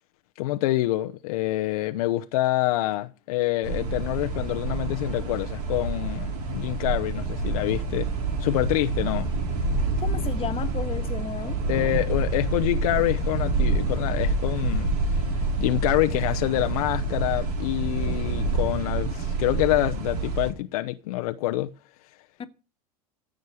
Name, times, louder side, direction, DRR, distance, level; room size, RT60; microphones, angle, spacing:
voice 1, 0.4-8.1 8.4-9.3 11.7-14.9 15.6-21.7, left 16 dB, 70° left, 0.8 m, -26 dB
sound 1, 3.6-20.5, right 3 dB, 75° right, 3.5 m, -27 dB
voice 2, 10.0-11.6 22.4-22.5, left 7 dB, 30° left, 1.6 m, -33 dB
15.0 x 5.4 x 9.3 m
hypercardioid pair, 90°, 20 cm